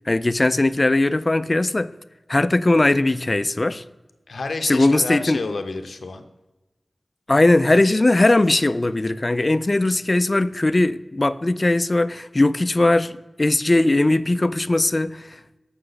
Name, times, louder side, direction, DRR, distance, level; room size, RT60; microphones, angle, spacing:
voice 1, 0.1-1.9 2.3-3.8 4.6-5.4 7.3-15.4, left 2 dB, 35° left, 0.3 m, -19 dB
voice 2, 4.3-6.3, left 3 dB, 85° left, 0.6 m, -30 dB
7.9 x 5.9 x 3.9 m
wide cardioid pair, 80°, 0 cm